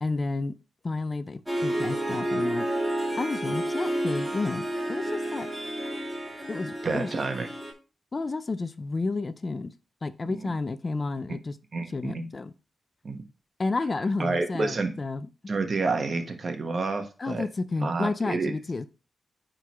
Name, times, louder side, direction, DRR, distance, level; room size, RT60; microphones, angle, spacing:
voice 1, 0.0-0.5 0.8-2.7 3.2-5.5 6.5-7.1 8.1-9.7 10.0-11.6 11.9-12.5 13.6-15.3 17.2-18.9, left 3 dB, 40° left, 0.5 m, -31 dB
Harp, 1.5-7.7, right 1 dB, 5° right, 2.7 m, -30 dB
voice 2, 6.8-7.5 10.3-10.5 11.7-12.3 13.0-13.2 14.2-14.9 15.5-17.4 17.8-18.5, right 3 dB, 55° right, 1.3 m, -29 dB
9.1 x 3.8 x 3.1 m
cardioid pair, 60°, 0 cm